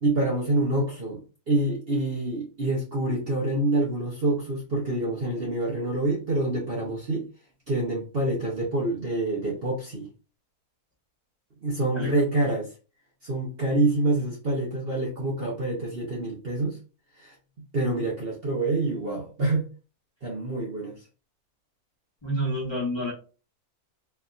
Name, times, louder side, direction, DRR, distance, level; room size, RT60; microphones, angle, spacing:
voice 1, 0.0-7.3 7.7-10.1 11.6-12.7 13.2-16.8 17.2-17.3 17.7-19.7 20.2-21.0, right 2 dB, 45° right, 0.9 m, -26 dB
voice 2, 22.2-23.1, equal, 20° left, 1.1 m, -28 dB
4.3 x 2.7 x 2.4 m
omnidirectional pair, 1.7 m